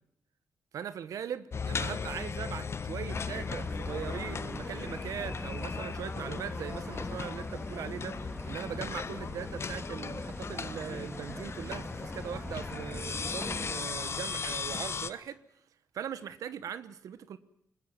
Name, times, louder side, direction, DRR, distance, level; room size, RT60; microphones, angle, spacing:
voice 1, 0.7-15.4 15.9-17.4, right 8 dB, 80° right, 14 dB, 1.1 m, -40 dB
sound 1, 1.5-15.1, left 5 dB, 50° left, 1.2 m, -37 dB
sound 2, 3.1-13.7, equal, ahead, 2.0 m, -42 dB
21.0 x 20.0 x 9.3 m, 0.72 s
cardioid pair, 60°, 6 cm